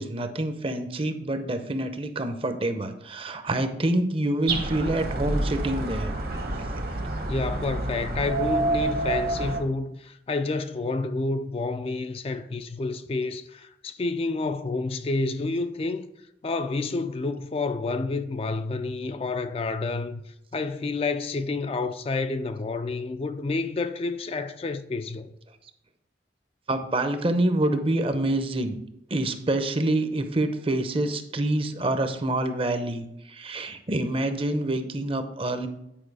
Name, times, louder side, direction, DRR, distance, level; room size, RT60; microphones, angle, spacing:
voice 1, 0.0-6.1 6.6-6.7 26.7-28.8 29.1-35.7, right 1 dB, 30° right, 0.7 m, -27 dB
sound 1, 4.5-9.6, right 2 dB, 55° right, 1.2 m, -28 dB
voice 2, 7.3-16.1 16.4-25.3, left 3 dB, 35° left, 0.4 m, -29 dB
9.0 x 4.7 x 4.7 m
head